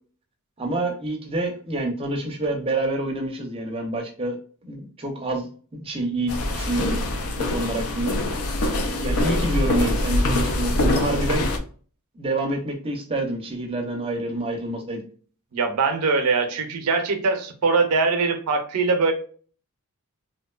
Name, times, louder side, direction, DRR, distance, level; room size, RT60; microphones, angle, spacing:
voice 1, 0.6-7.0 7.4-8.2 9.0-11.5 12.1-15.0, right 2 dB, 25° right, 2 dB, 0.5 m, -27 dB
sound 1, 6.3-11.6, left 1 dB, 70° left, 0.4 m, -24 dB
voice 2, 15.5-19.1, right 4 dB, 85° right, 6 dB, 0.5 m, -22 dB
2.7 x 2.2 x 2.2 m, 0.43 s
head